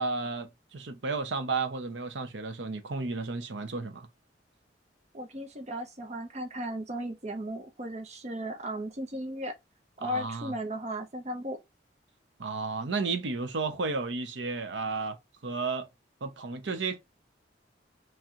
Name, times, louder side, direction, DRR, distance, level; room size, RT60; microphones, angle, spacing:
voice 1, 0.0-4.1 10.0-10.5 12.4-15.2 15.4-15.9 16.2-17.0, right 4 dB, 90° right, 0.7 m, -33 dB
voice 2, 5.1-9.5 10.0-11.6, equal, 40° right, 0.8 m, -36 dB
3.1 x 3.0 x 3.6 m
head